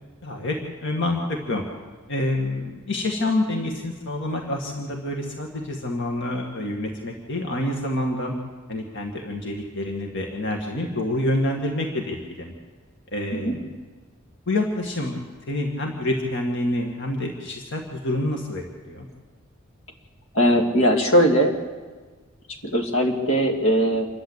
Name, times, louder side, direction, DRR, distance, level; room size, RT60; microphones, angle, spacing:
voice 1, 0.2-1.6 2.1-8.4 8.7-12.5 13.1-13.8 14.5-15.2 15.5-19.1, left 1 dB, 60° left, 1 dB, 2.2 m, -27 dB
voice 2, 20.3-21.5 22.7-24.1, equal, 75° left, 2 dB, 2.7 m, -19 dB
27.5 x 12.0 x 8.4 m, 1.4 s
head